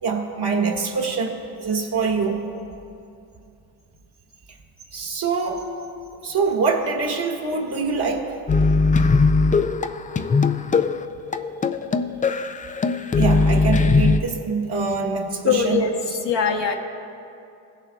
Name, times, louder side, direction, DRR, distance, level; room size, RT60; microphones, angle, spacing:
voice 1, 0.0-2.4 4.9-5.6 6.2-8.3 13.2-16.2, right 4 dB, 50° right, 1 dB, 1.8 m, -24 dB
sound 1, 8.5-14.2, left 4 dB, 20° left, 0.3 m, -20 dB
voice 2, 15.5-15.9 16.2-16.7, left 7 dB, 55° left, 3 dB, 1.2 m, -21 dB
17.0 x 7.3 x 2.3 m, 2.7 s
supercardioid pair, 60°, 50 cm